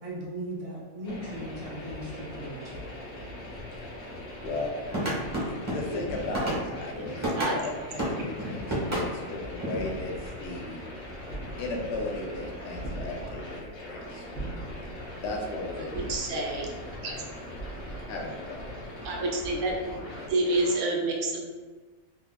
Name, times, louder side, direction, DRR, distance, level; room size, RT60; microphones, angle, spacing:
voice 1, 0.0-3.0, right 1 dB, 50° right, -4 dB, 0.4 m, -38 dB
sound 1, 1.0-20.8, left 1 dB, 80° left, 1.3 m, -41 dB
voice 2, 4.4-4.8 5.1-10.8 11.6-14.3 15.2-16.5 17.1-17.3 18.1-18.8, left 2 dB, 60° left, 0 dB, 0.8 m, -36 dB
sound 2, 4.9-7.6 8.0-9.9, right 1 dB, 15° right, 0.8 m, -31 dB
sound 3, 9.7-19.0, right 2 dB, 5° left, 1.1 m, -43 dB
voice 3, 15.8-16.7 17.0-17.1 19.0-20.0 20.3-21.6, right 2 dB, 70° right, 0 dB, 0.9 m, -29 dB
3.7 x 2.9 x 2.2 m, 1.3 s
omnidirectional pair, 1.4 m